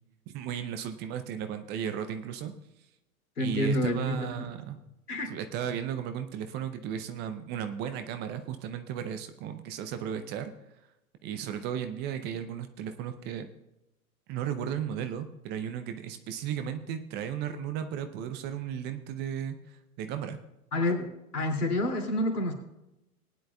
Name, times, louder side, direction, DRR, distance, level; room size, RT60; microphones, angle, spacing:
voice 1, 0.3-2.5 3.4-4.8 5.3-10.5 11.2-13.5 14.3-20.4, right 9 dB, 20° right, 8 dB, 0.6 m, -35 dB
voice 2, 3.4-4.5 5.1-5.3 20.7-22.5, left 1 dB, 75° left, 3 dB, 2.7 m, -29 dB
19.5 x 10.5 x 2.3 m, 0.92 s
figure-of-eight pair, 110°, 46 cm